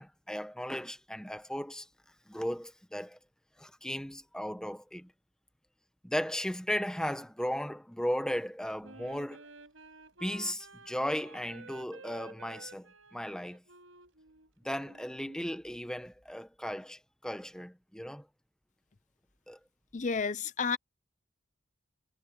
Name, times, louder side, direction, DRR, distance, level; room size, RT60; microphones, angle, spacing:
voice 1, 0.0-1.9 2.3-3.2 3.6-5.1 6.0-9.4 10.2-13.6 14.6-18.2 19.5-19.6, equal, 5° left, 1.1 m, -36 dB
Wind instrument woodwind instrument, 8.8-15.6, right 3 dB, 85° right, 6.8 m, -53 dB
voice 2, 19.9-20.8, left 5 dB, 40° left, 0.5 m, -31 dB
head